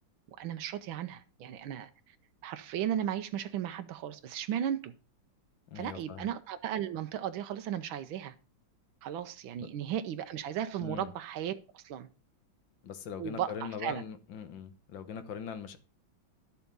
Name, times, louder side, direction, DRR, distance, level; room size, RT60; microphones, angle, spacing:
voice 1, 0.3-2.2 2.4-4.9 5.7-8.3 9.0-12.1 13.2-14.0, right 10 dB, 90° right, 1.6 m, -35 dB
voice 2, 5.7-6.3 9.6-9.7 10.8-11.1 12.8-15.8, left 7 dB, 75° left, 1.8 m, -41 dB
11.5 x 7.0 x 5.3 m
omnidirectional pair, 2.1 m